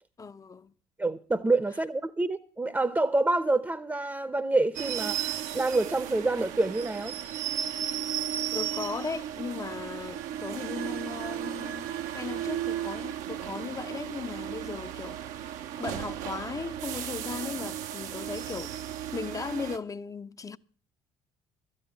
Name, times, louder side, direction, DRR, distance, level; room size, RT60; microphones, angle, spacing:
voice 1, 0.2-0.7 8.5-11.9 12.1-18.8 19.1-20.6, left 5 dB, 25° left, 0.6 m, -37 dB
voice 2, 1.0-7.2, right 2 dB, 15° right, 0.7 m, -27 dB
sound 1, 4.7-19.8, right 11 dB, 65° right, 0.7 m, -35 dB
13.0 x 9.7 x 6.6 m
hypercardioid pair, 55°, 14 cm